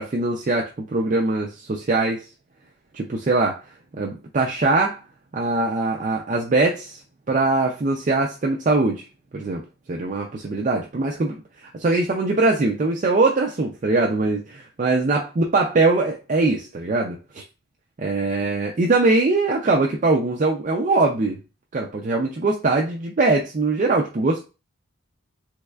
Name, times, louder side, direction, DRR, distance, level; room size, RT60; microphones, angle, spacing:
voice 1, 0.0-2.2 2.9-3.6 4.0-5.0 5.3-7.0 7.3-9.0 9.3-9.6 9.9-11.3 11.6-17.4 18.0-21.4 21.7-24.4, right 3 dB, 35° right, 0 dB, 0.4 m, -22 dB
3.4 x 3.2 x 2.3 m, 0.30 s
head